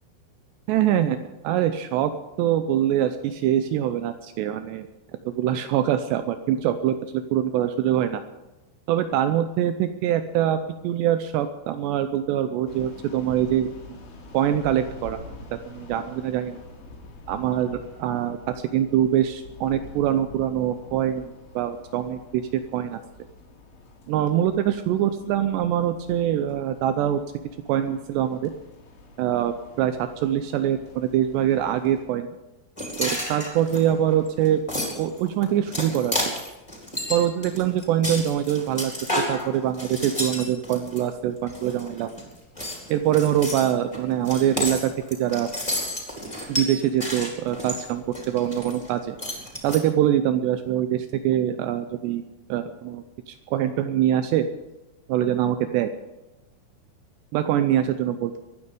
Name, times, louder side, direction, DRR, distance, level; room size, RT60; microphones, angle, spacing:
voice 1, 0.7-1.2 1.4-2.1 2.4-4.9 5.3-8.2 8.9-14.0 14.3-15.2 15.7-16.6 17.3-18.4 18.7-23.0 24.1-27.2 27.7-28.5 29.2-32.3 33.0-36.1 37.1-38.9 39.3-42.1 42.9-45.5 46.5-49.2 49.6-52.2 52.5-54.5 55.1-55.9 57.3-58.4, right 11 dB, 90° right, 9 dB, 2.4 m, -24 dB
sound 1, 12.7-32.1, left 3 dB, 75° left, 5.8 m, -46 dB
sound 2, 32.8-41.0 41.5-42.2 42.5-48.9 49.2-49.8, left 1 dB, 5° left, 3.2 m, -31 dB
24.0 x 9.8 x 5.1 m, 1.0 s
omnidirectional pair, 5.8 m